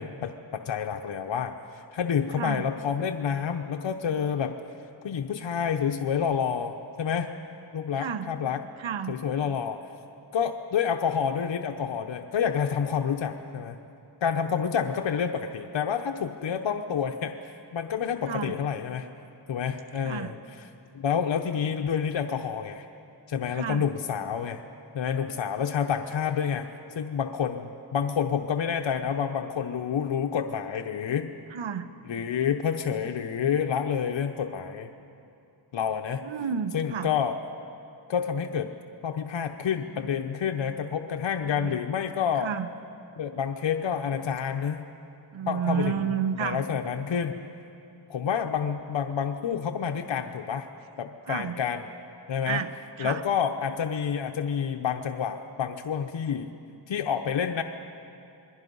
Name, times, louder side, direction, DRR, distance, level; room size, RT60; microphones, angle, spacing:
voice 1, 0.0-4.5 5.0-7.3 7.7-8.6 9.1-9.8 10.3-13.8 14.2-19.1 19.5-20.4 20.9-22.9 23.3-24.6 24.9-26.7 26.9-31.3 32.1-34.9 35.7-36.2 36.7-37.3 38.1-38.7 39.0-42.5 43.2-44.8 45.5-45.9 46.4-47.4 48.1-50.7 51.0-51.8 52.3-52.6 53.0-56.5 56.9-57.6, left 7 dB, 75° left, 4 dB, 0.9 m, -28 dB
voice 2, 8.0-8.3 8.8-9.2 18.3-18.6 20.0-20.3 23.5-23.9 31.5-31.9 36.2-37.1 41.4-41.8 42.4-42.7 45.3-46.6 51.3-51.6 52.5-52.7 53.0-53.2, right 7 dB, 80° right, 11 dB, 1.1 m, -31 dB
27.5 x 21.5 x 5.5 m, 2.7 s
cardioid pair, 50°, 46 cm